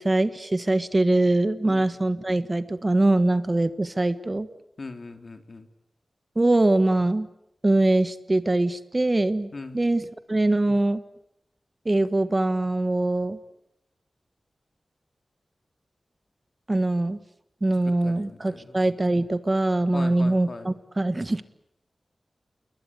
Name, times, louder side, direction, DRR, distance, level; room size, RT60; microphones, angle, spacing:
voice 1, 0.0-4.5 6.3-7.3 7.6-9.5 9.7-11.0 11.8-13.4 16.7-17.2 17.6-21.4, right 2 dB, 30° right, 13 dB, 1.5 m, -23 dB
voice 2, 4.8-5.7 9.5-9.8 18.0-18.8 19.9-20.7, left 3 dB, 55° left, 7 dB, 3.4 m, -39 dB
29.0 x 22.0 x 8.4 m, 0.77 s
wide cardioid pair, 75°, 0 cm